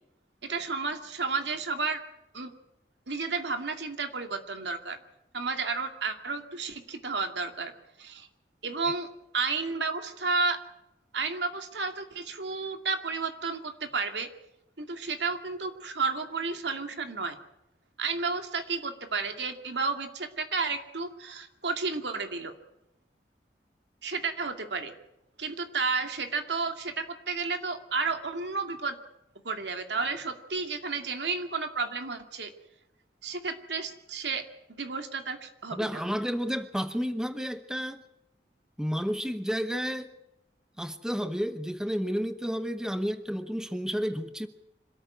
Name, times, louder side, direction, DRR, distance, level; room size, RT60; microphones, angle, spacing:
voice 1, 0.4-2.0 2.3-2.5 3.1-5.0 5.3-7.7 8.0-8.3 8.6-9.1 9.3-10.6 11.1-14.3 14.8-17.4 18.0-22.5 24.0-24.9 25.4-29.0 29.4-32.5 33.2-34.4 34.7-35.9, right 4 dB, 90° right, 6 dB, 2.4 m, -32 dB
voice 2, 35.7-38.0 38.8-40.1 40.8-44.5, equal, 5° right, 10 dB, 0.8 m, -31 dB
26.0 x 13.5 x 9.5 m, 0.88 s
head